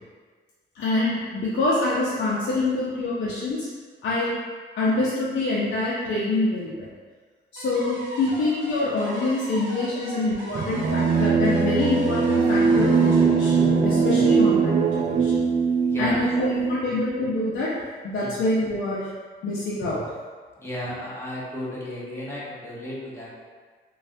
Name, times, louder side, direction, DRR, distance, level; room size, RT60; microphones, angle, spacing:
voice 1, 0.7-3.7 4.0-4.4 4.8-6.9 7.5-13.5 13.8-15.4 16.0-17.7 18.0-19.1 19.4-20.0, left 2 dB, 65° left, -8 dB, 0.6 m, -25 dB
sound 1, 7.6-14.5, right 1 dB, 80° right, 0.6 m, -39 dB
sound 2, 10.5-16.8, right 5 dB, 35° right, 0.4 m, -21 dB
voice 2, 15.8-16.3 16.9-17.0 18.2-18.4 20.6-23.3, left 1 dB, 15° left, -7 dB, 0.9 m, -34 dB
3.2 x 2.3 x 2.6 m, 1.5 s
cardioid pair, 90°, 20 cm